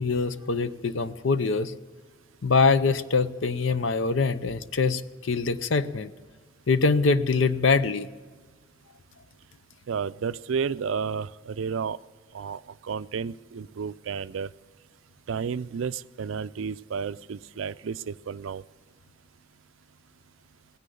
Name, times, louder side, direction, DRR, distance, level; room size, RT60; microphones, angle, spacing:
voice 1, 0.0-1.7 2.4-6.1 6.7-8.1, left 4 dB, 70° left, 14 dB, 0.6 m, -24 dB
voice 2, 9.9-12.0 12.3-14.5 15.3-18.6, right 6 dB, 75° right, 15 dB, 0.4 m, -32 dB
17.5 x 10.0 x 6.9 m, 1.5 s
head